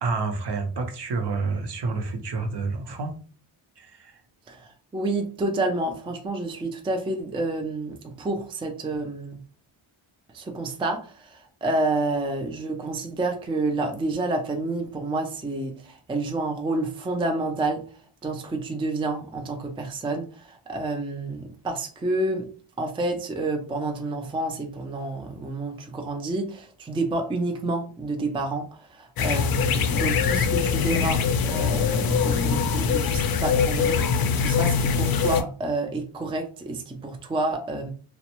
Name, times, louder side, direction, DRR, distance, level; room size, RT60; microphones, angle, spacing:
voice 1, 0.0-3.1 3.8-4.2, right 4 dB, 55° right, 5 dB, 0.7 m, -29 dB
voice 2, 4.5-9.4 10.3-17.8 18.2-22.5 22.8-37.9, right 2 dB, 10° right, 3 dB, 0.4 m, -29 dB
sound 1, 29.2-35.4, left 6 dB, 50° left, 0.4 m, -23 dB
2.4 x 2.1 x 2.9 m, 0.39 s
cardioid pair, 85°, 49 cm